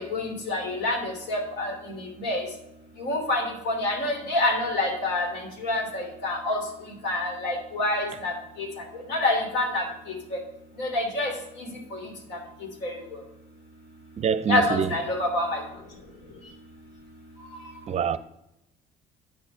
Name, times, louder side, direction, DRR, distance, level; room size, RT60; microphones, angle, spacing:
voice 1, 0.0-1.7 2.2-2.4 3.0-6.6 7.0-8.3 9.1-9.8 10.8-11.3 11.9-12.0 12.8-12.9 14.5-15.6, left 2 dB, 85° left, 1 dB, 3.1 m, -26 dB
voice 2, 14.2-14.9 17.9-18.2, right 7 dB, 40° right, 15 dB, 0.5 m, -25 dB
8.6 x 6.7 x 5.5 m, 0.88 s
cardioid pair, 110°, 17 cm